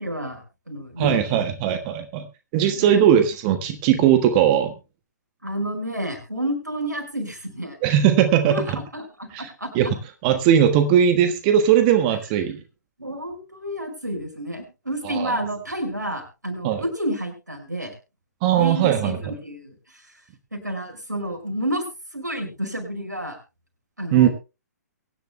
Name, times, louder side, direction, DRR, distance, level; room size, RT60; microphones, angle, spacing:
voice 1, 0.0-1.8 2.7-3.0 5.4-7.8 8.5-9.9 13.0-17.9 18.5-20.2 20.5-21.8 22.1-23.4 24.0-24.3, right 1 dB, 85° right, 4 dB, 5.4 m, -30 dB
voice 2, 1.0-2.2 2.5-4.7 7.8-8.6 9.3-9.5 9.7-9.9 10.2-12.6 15.0-15.3 16.6-16.8 18.4-19.2 24.1-24.3, right 9 dB, 30° right, 8 dB, 1.3 m, -19 dB
23.5 x 10.5 x 2.2 m, 0.29 s
figure-of-eight pair, 125°, 9 cm